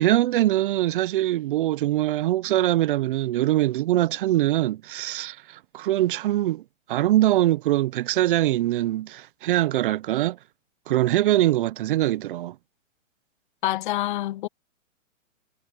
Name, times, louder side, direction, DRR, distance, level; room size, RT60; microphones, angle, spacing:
voice 1, 0.0-6.6 6.9-10.4 10.9-12.5, right 14 dB, 40° right, 0.7 m, -23 dB
voice 2, 13.6-14.5, left 15 dB, 40° left, 0.7 m, -26 dB
hypercardioid pair, 135°, 39 cm